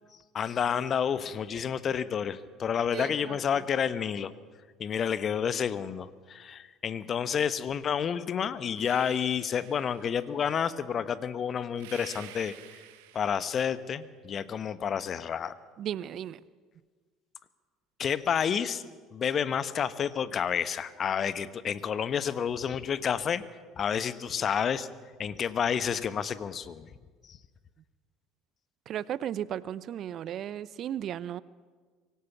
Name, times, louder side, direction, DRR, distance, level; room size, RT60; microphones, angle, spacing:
voice 1, 0.3-4.3 4.8-12.5 13.1-15.5 18.0-18.8 19.1-23.4 23.8-24.9 25.2-26.9 27.3-27.4, left 7 dB, 40° left, 15 dB, 1.1 m, -30 dB
voice 2, 2.9-3.4 15.8-16.4 28.9-31.4, right 10 dB, 50° right, 19 dB, 0.6 m, -35 dB
sound 1, 8.7-10.4 11.7-13.8, right 12 dB, 70° right, 1.5 m, -50 dB
25.0 x 17.5 x 7.2 m, 1.5 s
figure-of-eight pair, 60°, 0 cm